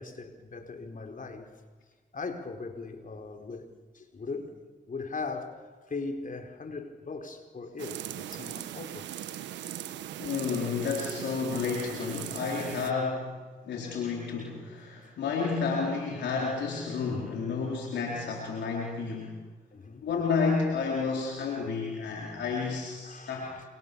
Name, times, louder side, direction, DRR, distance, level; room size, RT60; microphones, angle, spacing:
voice 1, 0.0-1.5 2.1-3.7 3.9-4.5 4.9-5.5 5.9-9.1 12.7-12.9 17.1-17.4 19.7-20.1 23.0-23.6, left 4 dB, 50° left, 4.4 m, -39 dB
sound 1, 7.8-12.9, right 12 dB, 90° right, 1.3 m, -39 dB
voice 2, 10.2-19.4 20.0-23.5, left 5 dB, 80° left, 4.3 m, -31 dB
29.5 x 26.0 x 7.0 m
supercardioid pair, 45°, 18 cm